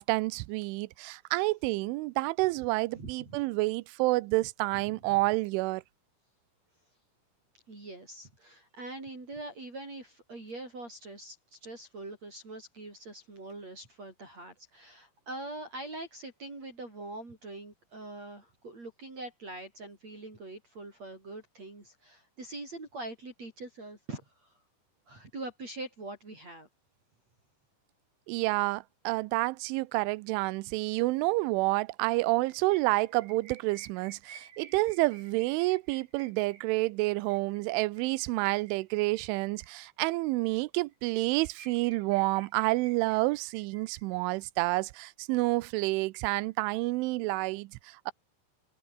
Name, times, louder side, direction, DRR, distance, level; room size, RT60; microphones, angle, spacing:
voice 1, 0.0-5.8 28.3-48.1, right 22 dB, 90° right, 3.1 m, -29 dB
voice 2, 3.0-3.4 4.9-5.0 7.7-24.5 25.1-26.7, right 2 dB, 35° right, 8.6 m, -43 dB
sound 1, 32.3-40.2 40.5-40.6 40.9-41.0 41.3-44.4, right 6 dB, 55° right, 6.0 m, -54 dB
omnidirectional pair, 5.4 m